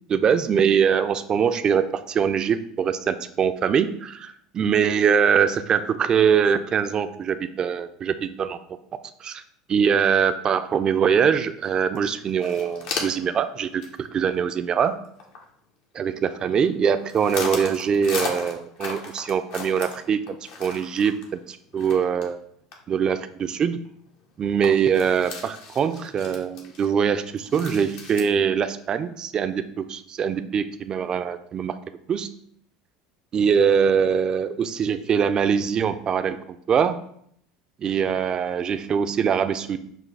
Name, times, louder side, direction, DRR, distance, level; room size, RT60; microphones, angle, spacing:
voice 1, 0.1-8.6 9.2-9.4 9.7-15.0 15.9-21.2 21.5-22.4 22.9-23.8 24.4-31.8 32.1-32.3 33.3-37.0 37.8-39.8, right 7 dB, 35° right, 11 dB, 0.3 m, -23 dB
sound 1, 11.6-11.7 11.9-12.0 12.3-13.3 13.8-14.1 14.4-14.5 14.9-15.4 16.1-16.7 17.1-22.4 22.7-22.8 23.2-23.3 23.8-23.9 24.2-24.3 24.6-28.2, left 4 dB, 70° left, 0.9 m, -35 dB
6.1 x 2.4 x 3.3 m, 0.68 s
hypercardioid pair, 85°, 2 cm